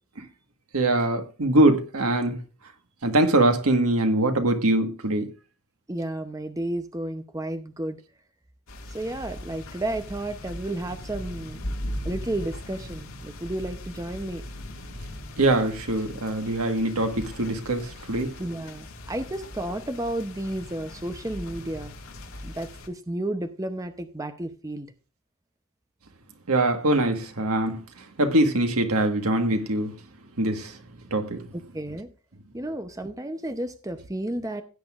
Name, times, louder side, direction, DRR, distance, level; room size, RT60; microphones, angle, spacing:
voice 1, 0.7-2.4 3.0-5.3 15.4-18.4 26.5-29.9 30.4-30.8 31.1-31.5, right 1 dB, 85° right, 1.5 m, -23 dB
voice 2, 5.9-8.0 8.9-11.6 12.0-14.4 18.4-21.9 22.4-24.9 31.7-32.1 32.5-34.6, right 1 dB, 15° right, 0.7 m, -32 dB
sound 1, 8.7-22.9, left 1 dB, 70° left, 2.0 m, -39 dB
16.0 x 9.1 x 2.5 m
head